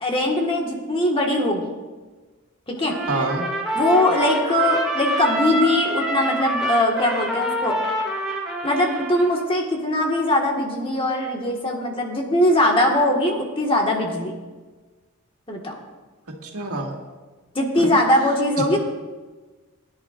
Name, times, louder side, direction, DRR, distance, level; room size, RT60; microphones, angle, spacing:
voice 1, 0.0-1.8 2.7-3.0 3.8-7.8 8.6-14.3 15.5-15.8 17.6-18.8, left 1 dB, 25° left, 0 dB, 1.7 m, -21 dB
Trumpet, 2.9-9.5, equal, ahead, 2.3 m, -26 dB
voice 2, 3.1-3.5 16.3-16.9 17.8-18.0, right 2 dB, 90° right, 0 dB, 1.9 m, -27 dB
20.5 x 11.0 x 2.5 m, 1.3 s
head